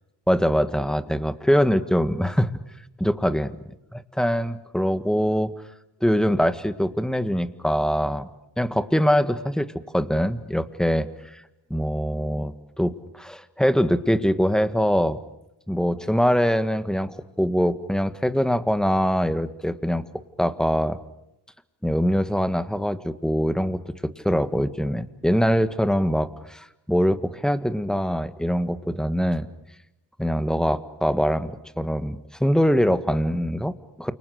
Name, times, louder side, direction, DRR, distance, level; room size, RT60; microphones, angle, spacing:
voice 1, 0.3-2.5 3.0-3.6 3.9-5.5 6.0-8.3 8.6-11.4 11.7-15.2 15.7-20.0 20.4-21.0 21.8-23.8 24.2-29.5 30.2-34.1, equal, ahead, 11 dB, 1.7 m, -23 dB
29.0 x 25.5 x 6.6 m, 0.89 s
cardioid pair, 80°, 41 cm